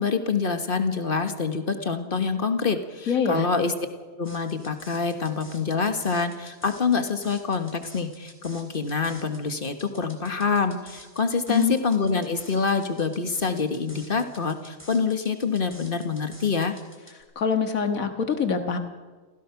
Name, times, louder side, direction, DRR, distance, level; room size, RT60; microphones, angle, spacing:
voice 1, 0.0-3.7 4.2-16.8, left 5 dB, 40° left, 8 dB, 1.6 m, -26 dB
voice 2, 3.1-3.5 11.5-11.7 17.4-18.8, left 6 dB, 75° left, 7 dB, 2.0 m, -24 dB
sound 1, 4.2-17.2, equal, 10° left, 3.4 m, -50 dB
27.5 x 16.5 x 5.9 m, 1.4 s
omnidirectional pair, 1.4 m